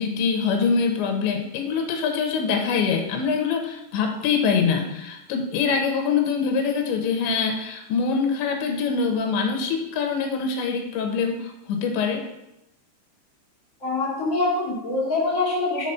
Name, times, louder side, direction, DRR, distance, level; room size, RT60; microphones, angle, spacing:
voice 1, 0.0-12.2, left 5 dB, 85° left, 3 dB, 3.3 m, -24 dB
voice 2, 13.8-15.9, left 2 dB, 25° left, -5 dB, 2.2 m, -24 dB
5.8 x 5.7 x 5.6 m, 0.87 s
omnidirectional pair, 5.0 m